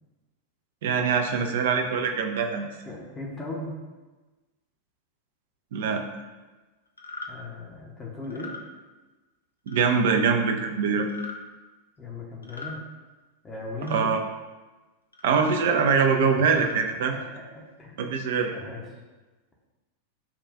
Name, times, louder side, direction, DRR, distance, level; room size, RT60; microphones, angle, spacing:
voice 1, 0.8-2.7 5.7-6.0 9.7-11.1 13.9-14.2 15.2-17.1 18.0-18.5, right 5 dB, 55° right, 5 dB, 0.5 m, -23 dB
voice 2, 2.8-3.7 7.3-8.5 12.0-12.8 13.4-14.2 16.3-16.7 17.1-17.2 17.5-18.2 18.5-18.8, left 2 dB, 20° left, -3 dB, 0.8 m, -38 dB
sound 1, 7.0-7.3 8.2-8.6 9.7-10.0 11.0-11.4 12.4-12.8 13.8-14.1 15.1-15.5 16.3-16.8, left 3 dB, 80° left, 0.4 m, -39 dB
7.1 x 2.4 x 2.4 m, 1.2 s
figure-of-eight pair, 90°, 0 cm